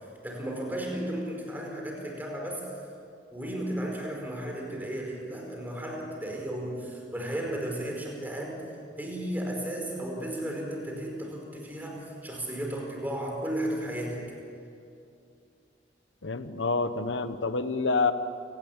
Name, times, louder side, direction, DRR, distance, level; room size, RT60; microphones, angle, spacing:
voice 1, 0.2-2.8 3.3-8.7 9.0-14.3, right 1 dB, 10° right, 0 dB, 4.9 m, -34 dB
voice 2, 16.2-18.1, left 3 dB, 90° left, 11 dB, 1.1 m, -27 dB
29.0 x 18.5 x 8.8 m, 2.6 s
head